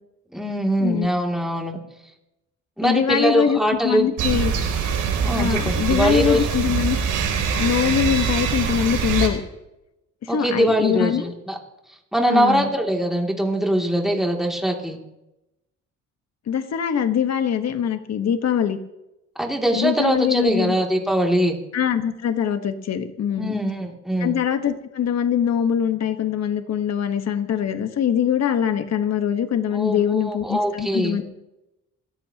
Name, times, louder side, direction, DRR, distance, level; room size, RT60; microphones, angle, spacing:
voice 1, 0.3-1.8 2.8-4.1 5.2-6.5 10.3-11.6 12.1-15.0 19.4-21.6 23.4-24.4 29.7-31.2, right 1 dB, ahead, 0 dB, 2.8 m, -22 dB
voice 2, 2.8-4.5 5.4-7.0 7.6-9.4 10.2-11.3 12.3-12.7 16.5-18.8 19.8-20.7 21.7-23.6 24.2-31.2, left 8 dB, 60° left, 8 dB, 1.4 m, -23 dB
sound 1, 4.2-9.3, right 6 dB, 85° right, 3.3 m, -23 dB
27.5 x 14.0 x 3.0 m, 0.93 s
cardioid pair, 90°, 30 cm